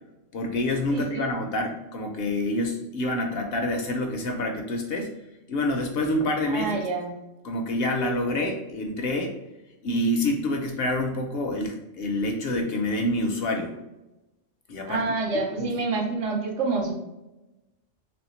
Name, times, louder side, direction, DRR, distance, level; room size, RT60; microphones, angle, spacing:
voice 1, 0.3-5.1 5.5-6.8 7.4-9.3 9.8-13.7 14.7-15.0 15.6-15.7, left 1 dB, 65° left, 3 dB, 0.7 m, -27 dB
voice 2, 0.9-1.3 6.5-7.2 14.9-16.9, right 3 dB, 80° right, 1 dB, 1.1 m, -27 dB
3.4 x 3.1 x 3.0 m, 0.99 s
omnidirectional pair, 1.3 m